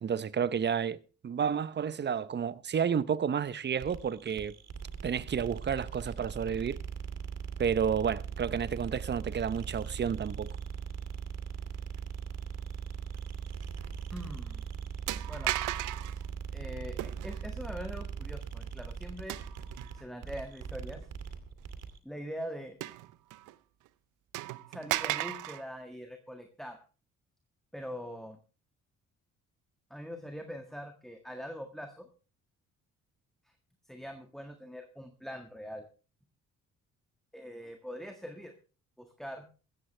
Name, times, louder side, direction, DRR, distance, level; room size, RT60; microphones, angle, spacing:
voice 1, 0.0-4.5 5.0-6.8 7.6-10.5, right 7 dB, 35° right, 0.8 m, -31 dB
sound 1, 3.8-22.0, right 6 dB, 60° right, 2.4 m, -40 dB
sound 2, 13.6-13.8 14.2-14.3 15.1-16.2 17.0-17.4 19.3-20.1 20.6-20.7 22.8-23.6 23.9-24.0 24.3-25.6, right 16 dB, 85° right, 0.7 m, -35 dB
voice 2, 14.1-14.6 15.2-15.5 16.5-19.4 19.9-21.0 22.0-22.8 24.7-26.8 27.7-28.4 29.9-32.1 33.9-35.9 37.3-38.6 39.0-39.4, equal, ahead, 1.6 m, -43 dB
16.0 x 14.5 x 3.3 m
cardioid pair, 90°, 30 cm